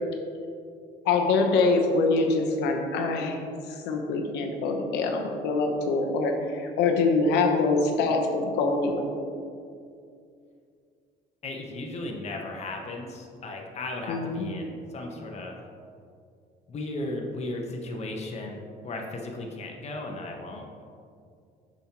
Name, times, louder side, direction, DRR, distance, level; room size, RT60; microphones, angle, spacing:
voice 1, 1.1-3.4 3.7-9.1 14.1-14.5, left 3 dB, 90° left, 3 dB, 0.9 m, -24 dB
voice 2, 11.4-15.6 16.7-20.8, left 2 dB, 40° left, 1 dB, 1.0 m, -36 dB
7.0 x 6.2 x 2.9 m, 2.4 s
cardioid pair, 110°, 17 cm